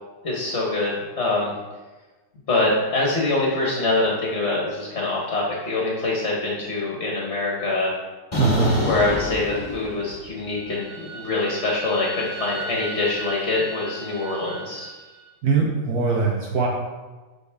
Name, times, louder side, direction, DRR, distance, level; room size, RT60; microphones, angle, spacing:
voice 1, 0.2-1.5 2.5-7.9 8.8-14.9, left 2 dB, 40° left, -4 dB, 1.3 m, -24 dB
sound 1, 8.3-10.3 10.6-14.9, left 1 dB, 20° left, 1.3 m, -31 dB
voice 2, 8.4-8.7 15.4-16.7, right 4 dB, 65° right, -1 dB, 1.3 m, -21 dB
12.0 x 4.0 x 3.5 m, 1.2 s
omnidirectional pair, 1.9 m